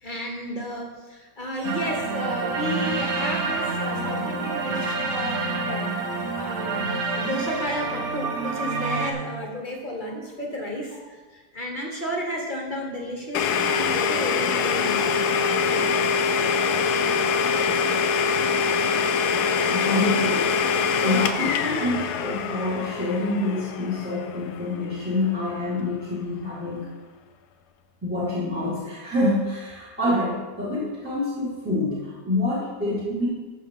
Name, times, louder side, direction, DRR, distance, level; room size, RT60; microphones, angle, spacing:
voice 1, 0.0-5.9 6.4-11.0 11.3-15.4, equal, 30° left, 0 dB, 1.4 m, -32 dB
sound 1, 1.6-9.1, right 3 dB, 50° right, 1.0 m, -28 dB
Domestic sounds home sounds, 13.3-25.0, left 5 dB, 80° left, 1.2 m, -24 dB
voice 2, 19.6-26.8 28.0-33.3, left 2 dB, 5° right, -7 dB, 1.9 m, -27 dB
13.0 x 5.5 x 3.7 m, 1.3 s
omnidirectional pair, 1.7 m